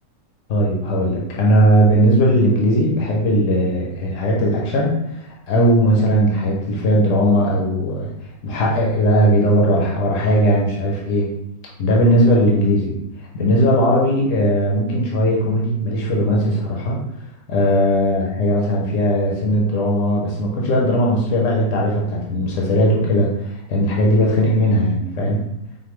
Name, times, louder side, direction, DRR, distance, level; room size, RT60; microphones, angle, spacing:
voice 1, 0.5-8.1 8.4-11.3 11.8-12.9 13.3-17.0 17.5-25.5, equal, 65° left, -2 dB, 1.1 m, -18 dB
5.2 x 2.6 x 3.1 m, 0.81 s
omnidirectional pair, 1.5 m